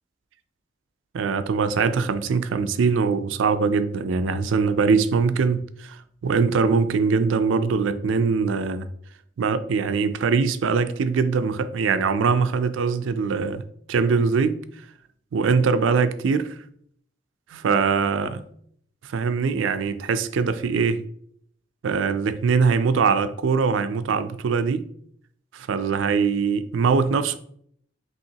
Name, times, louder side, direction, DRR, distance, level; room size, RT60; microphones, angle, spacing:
voice 1, 1.1-8.9 9.4-13.6 13.9-14.6 15.3-16.5 17.5-18.4 19.0-21.0 21.8-24.8 25.5-27.4, right 5 dB, 85° right, 0.4 m, -22 dB
5.5 x 2.9 x 2.8 m
head